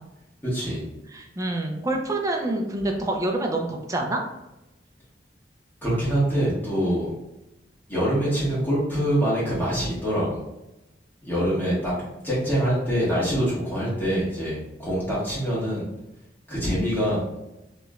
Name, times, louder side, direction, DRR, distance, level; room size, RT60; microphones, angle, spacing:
voice 1, 0.4-0.8 5.8-7.1 7.9-10.4 11.2-11.9 12.2-15.8 16.5-17.2, equal, 10° left, -8 dB, 1.4 m, -24 dB
voice 2, 1.1-4.2 11.5-11.7, right 2 dB, 20° right, 2 dB, 0.4 m, -27 dB
3.1 x 3.0 x 2.4 m, 0.95 s
head